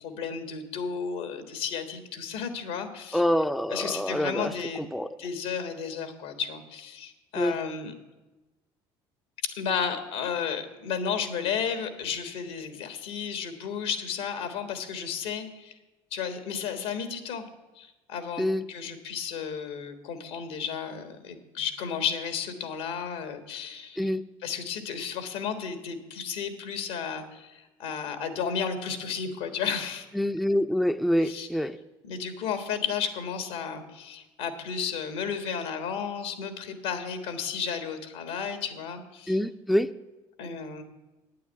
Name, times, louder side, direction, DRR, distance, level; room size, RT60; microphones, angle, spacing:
voice 1, 0.0-3.2 3.7-4.8 5.2-7.9 9.6-15.7 16.1-17.4 17.8-24.1 24.4-30.0 31.2-31.5 32.0-39.4 40.4-40.8, left 7 dB, 80° left, 1.5 m, -33 dB
voice 2, 3.1-4.5 4.8-5.1 7.4-7.6 18.4-18.6 24.0-24.2 30.2-31.8 39.3-39.9, equal, ahead, 0.5 m, -26 dB
9.1 x 8.6 x 8.1 m
hypercardioid pair, 75°, 13 cm